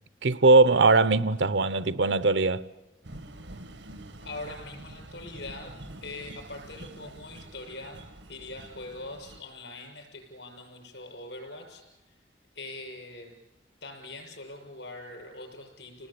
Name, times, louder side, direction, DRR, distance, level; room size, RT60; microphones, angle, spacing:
voice 1, 0.2-2.6, right 3 dB, 75° right, 0.9 m, -20 dB
sound 1, 3.0-9.4, right 1 dB, 90° right, 1.7 m, -46 dB
voice 2, 4.2-8.0 8.3-12.1 12.5-13.3 13.8-16.1, left 2 dB, 75° left, 6.6 m, -42 dB
29.0 x 19.5 x 8.5 m
head